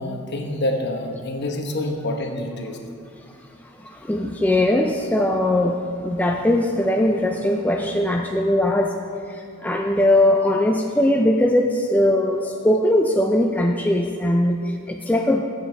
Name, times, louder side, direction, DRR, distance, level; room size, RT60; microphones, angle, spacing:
voice 1, 0.0-2.8 14.5-14.7, left 1 dB, 55° left, 2 dB, 1.0 m, -27 dB
voice 2, 3.8-9.0 9.3-15.4, left 1 dB, 5° left, 2 dB, 0.3 m, -20 dB
15.0 x 6.8 x 3.3 m, 2.3 s
head